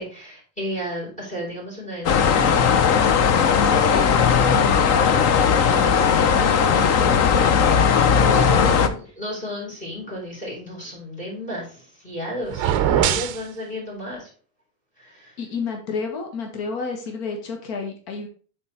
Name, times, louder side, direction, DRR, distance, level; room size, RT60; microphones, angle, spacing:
voice 1, 0.0-14.3 15.0-15.4, equal, 15° left, -4 dB, 4.2 m, -33 dB
sound 1, 2.0-8.9, left 7 dB, 35° left, 0.5 m, -17 dB
sound 2, 12.5-13.4, right 10 dB, 40° right, 0.6 m, -21 dB
voice 2, 15.4-18.3, left 4 dB, 80° left, 3 dB, 1.7 m, -30 dB
7.6 x 4.5 x 4.3 m, 0.40 s
cardioid pair, 160°, 48 cm